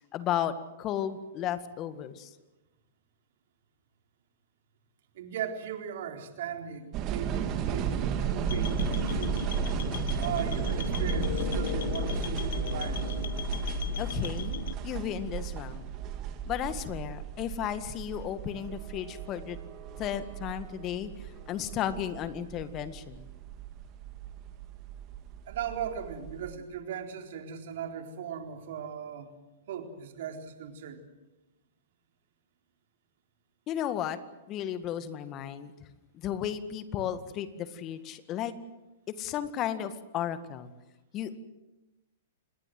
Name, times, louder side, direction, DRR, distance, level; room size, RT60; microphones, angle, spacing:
voice 1, 0.1-2.3 14.0-14.5 14.8-15.9 16.5-19.6 20.0-23.3 33.7-34.2 34.5-35.7 36.1-38.5 39.1-40.7 41.1-41.4, left 10 dB, 35° left, 12 dB, 1.8 m, -34 dB
voice 2, 5.1-9.5 10.2-13.2 25.5-29.4 29.7-31.0, right 8 dB, 60° right, 4 dB, 4.0 m, -38 dB
sound 1, 6.9-26.6, right 9 dB, 35° right, 2.8 m, -35 dB
sound 2, 8.5-14.8, left 9 dB, 70° left, 1.3 m, -34 dB
27.5 x 21.0 x 7.8 m, 1.0 s
hypercardioid pair, 115°, 0 cm